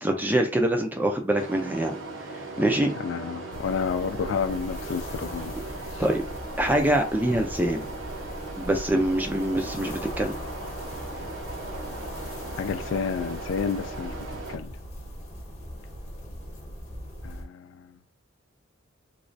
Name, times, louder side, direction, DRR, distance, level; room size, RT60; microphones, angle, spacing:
voice 1, 0.0-2.0 2.6-2.9 6.0-6.2 6.6-7.9 8.6-10.3, right 1 dB, 10° right, 0.4 m, -24 dB
sound 1, 1.4-14.6, right 3 dB, 70° right, 0.8 m, -38 dB
voice 2, 2.7-5.6 5.9-6.0 12.6-14.7 17.2-17.9, left 6 dB, 65° left, 0.3 m, -31 dB
sound 2, 3.5-17.4, equal, 35° left, 1.1 m, -39 dB
3.1 x 2.4 x 2.6 m
head